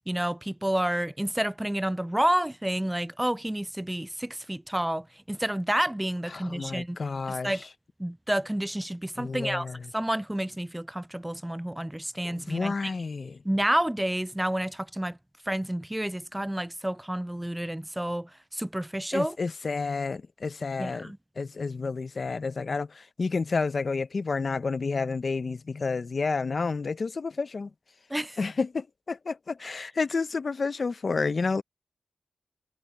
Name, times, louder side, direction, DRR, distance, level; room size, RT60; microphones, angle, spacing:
voice 1, 0.1-7.0 7.3-7.7 8.0-9.7 9.9-12.9 13.4-15.2 15.5-19.4 20.8-21.2 28.1-28.4 29.6-29.7, right 1 dB, 10° right, 0.3 m, -29 dB
voice 2, 6.3-7.5 9.2-9.8 12.2-13.4 19.1-27.7 28.4-31.6, left 4 dB, 55° left, 0.7 m, -30 dB
wide cardioid pair, 100°, 0 cm